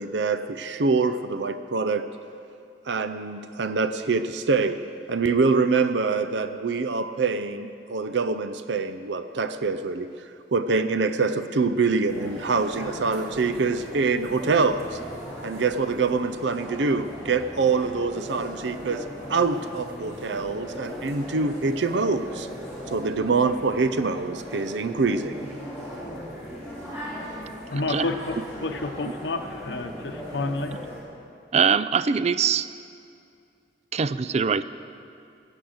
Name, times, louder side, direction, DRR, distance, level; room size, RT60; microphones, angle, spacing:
voice 1, 0.0-2.1 2.9-4.8 5.1-10.1 10.5-15.0 15.4-22.5 22.9-25.5, right 4 dB, 85° right, 11 dB, 0.6 m, -25 dB
sound 1, 12.1-31.0, equal, 15° right, 4.2 m, -38 dB
voice 2, 27.7-30.7, left 3 dB, 75° left, 6 dB, 0.8 m, -30 dB
voice 3, 31.5-32.7 33.9-34.6, right 6 dB, 40° right, 14 dB, 0.4 m, -22 dB
15.0 x 8.7 x 7.9 m, 2.4 s
head